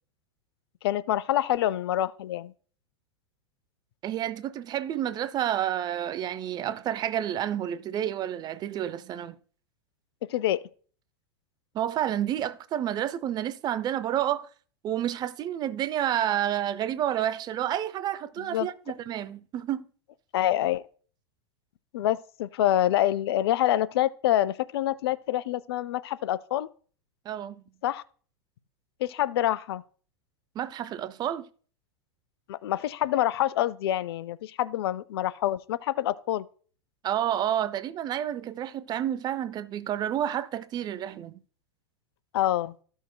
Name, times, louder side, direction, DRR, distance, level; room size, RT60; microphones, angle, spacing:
voice 1, 0.8-2.5 10.3-10.7 18.5-18.7 20.3-20.8 21.9-26.7 27.8-28.0 29.0-29.8 32.5-36.4 42.3-42.7, left 13 dB, 65° left, 0.4 m, -26 dB
voice 2, 4.0-9.4 11.7-14.5 14.8-19.8 27.3-27.6 30.6-31.5 37.0-41.4, right 11 dB, 30° right, 0.5 m, -30 dB
14.0 x 6.3 x 2.2 m
hypercardioid pair, 95°, 14 cm